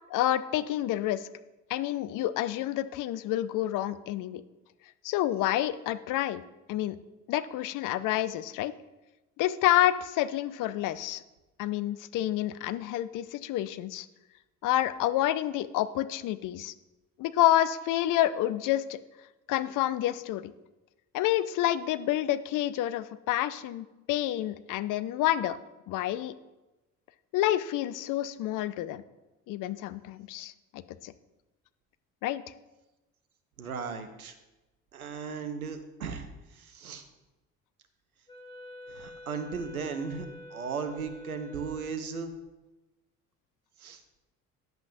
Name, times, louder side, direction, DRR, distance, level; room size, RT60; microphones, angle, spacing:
voice 1, 0.1-1.3 1.7-4.4 5.0-6.4 6.7-7.0 7.3-8.7 9.4-11.2 11.6-14.1 14.6-16.7 17.2-19.0 19.5-20.5 21.1-25.6 25.9-26.3 27.3-29.0 29.5-31.1 32.2-32.4, left 13 dB, 50° left, 14 dB, 0.5 m, -28 dB
voice 2, 33.6-34.3 34.9-37.0 38.9-42.3 43.8-44.0, right 5 dB, 90° right, 8 dB, 0.7 m, -36 dB
Wind instrument woodwind instrument, 38.3-42.1, left 1 dB, 10° left, 2.9 m, -47 dB
10.5 x 7.1 x 2.6 m, 1.1 s
figure-of-eight pair, 55°, 42 cm